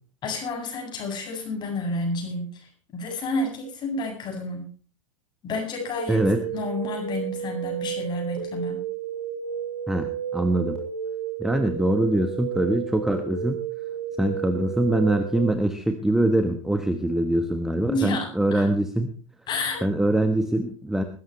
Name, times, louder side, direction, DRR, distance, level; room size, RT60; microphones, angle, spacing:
voice 1, 0.2-4.7 5.4-6.2 6.5-8.8 17.9-18.7 19.5-19.8, left 2 dB, 25° left, 2 dB, 7.8 m, -30 dB
sound 1, 6.0-15.5, right 8 dB, 55° right, 6.5 m, -32 dB
voice 2, 6.1-6.4 9.9-10.8 11.4-13.6 14.2-19.1 19.8-21.0, right 1 dB, ahead, 8 dB, 1.3 m, -23 dB
20.5 x 16.0 x 3.3 m, 0.41 s
figure-of-eight pair, 95°, 17 cm